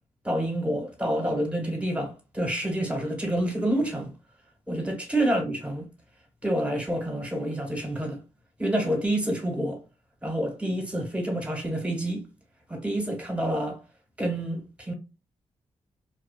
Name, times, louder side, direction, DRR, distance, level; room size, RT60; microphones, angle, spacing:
voice 1, 0.2-4.1 4.7-5.9 6.4-8.2 8.6-9.8 10.2-12.3 12.7-13.8 14.2-14.9, right 1 dB, 10° right, 1.2 m, -28 dB
2.7 x 2.3 x 2.3 m
cardioid pair, 50°, 13 cm